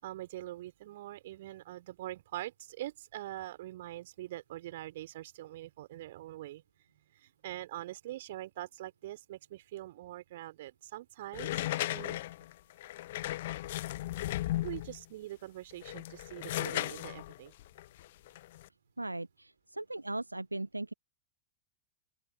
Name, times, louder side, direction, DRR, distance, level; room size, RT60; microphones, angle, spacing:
voice 1, 0.0-6.6 7.1-11.6 11.9-12.2 14.6-17.5, right 15 dB, 55° right, 4.3 m, -43 dB
sound 1, 11.3-15.0 15.7-18.7, left 15 dB, 55° left, 1.3 m, -36 dB
voice 2, 19.0-20.9, right 2 dB, 85° right, 0.8 m, -38 dB
open air
figure-of-eight pair, 90°, 0 cm